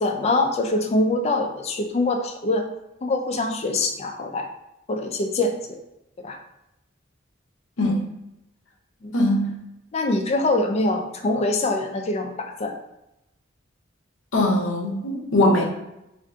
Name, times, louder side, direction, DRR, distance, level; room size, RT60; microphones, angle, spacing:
voice 1, 0.0-2.7 3.0-4.5 4.9-5.8 6.2-6.4 9.0-9.1 9.9-12.7, left 2 dB, 35° left, 4 dB, 0.4 m, -24 dB
voice 2, 9.1-9.6 14.3-15.6, left 1 dB, 80° left, 2 dB, 0.6 m, -21 dB
2.6 x 2.5 x 3.4 m, 0.89 s
head